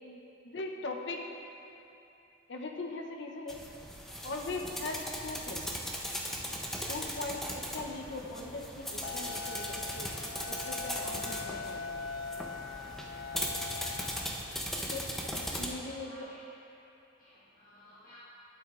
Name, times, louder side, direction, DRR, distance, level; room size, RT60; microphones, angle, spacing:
voice 1, 0.0-1.2 2.5-3.6 4.2-5.7 6.9-10.1 10.5-12.0 14.9-15.1 15.3-16.3, left 2 dB, 65° left, 2 dB, 0.8 m, -40 dB
sound 1, 3.5-15.7, equal, ahead, 0.6 m, -38 dB
sound 2, 9.0-14.2, left 5 dB, 85° left, 0.4 m, -41 dB
voice 2, 15.6-16.4 17.2-18.2, left 1 dB, 45° left, -11 dB, 1.7 m, -57 dB
11.5 x 8.8 x 2.5 m, 2.9 s
head